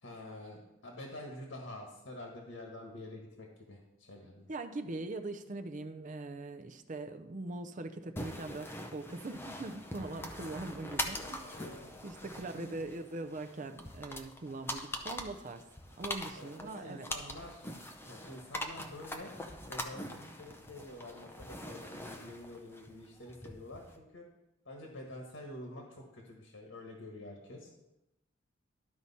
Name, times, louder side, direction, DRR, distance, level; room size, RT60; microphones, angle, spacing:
voice 1, 0.0-4.5 11.0-12.8 14.7-15.0 16.3-17.6 18.0-19.3 19.7-24.3 24.6-27.7, left 1 dB, 90° left, 0 dB, 1.4 m, -48 dB
voice 2, 4.5-11.4 12.0-15.6 16.0-17.1, right 2 dB, 40° right, 8 dB, 0.6 m, -41 dB
sound 1, 8.2-24.0, left 1 dB, 10° left, 0.6 m, -43 dB
12.5 x 4.8 x 4.2 m, 0.95 s
head